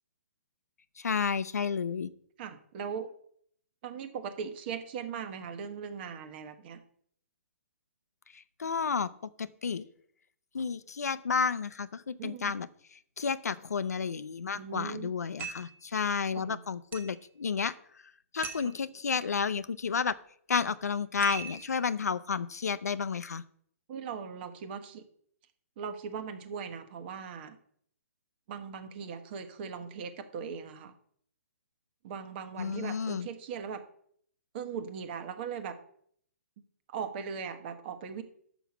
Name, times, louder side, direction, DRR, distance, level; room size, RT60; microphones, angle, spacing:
voice 1, 1.0-2.1 8.3-9.1 9.4-9.9 10.5-12.7 13.2-17.7 18.3-20.2 20.5-23.4 32.6-33.3, left 6 dB, 85° left, 14 dB, 0.6 m, -31 dB
voice 2, 2.4-3.1 3.8-6.8 12.2-12.5 14.5-15.1 16.3-16.6 18.6-18.7 23.9-25.0 25.8-27.6 28.5-30.9 32.0-33.8 34.5-35.8 36.9-38.2, right 6 dB, 40° right, 9 dB, 1.2 m, -39 dB
sound 1, 15.4-15.8 16.9-17.2 18.4-18.8 21.2-21.8, right 6 dB, 20° right, 1.1 m, -40 dB
6.1 x 6.0 x 7.0 m, 0.62 s
hypercardioid pair, 140°, 8 cm